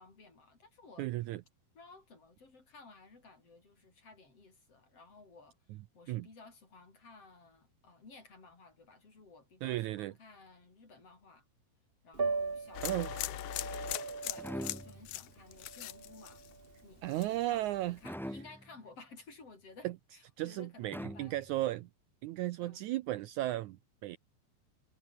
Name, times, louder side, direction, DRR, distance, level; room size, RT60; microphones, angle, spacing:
voice 1, 0.0-1.1 1.7-11.4 12.0-13.9 14.2-16.4 16.8-21.4 22.6-22.8, left 3 dB, 40° left, 6.3 m, -56 dB
voice 2, 1.0-1.4 6.1-6.3 9.6-10.1 12.8-13.3 17.0-18.0 19.8-19.9 20.4-21.9 22.2-24.2, right 15 dB, 85° right, 1.7 m, -35 dB
Piano, 12.1-18.1, right 4 dB, 50° right, 0.6 m, -40 dB
sound 1, 12.7-16.8 17.1-17.6, left 16 dB, 70° left, 1.9 m, -40 dB
sound 2, 14.4-15.2 18.0-18.8 20.9-21.7, equal, ahead, 0.4 m, -43 dB
omnidirectional pair, 4.2 m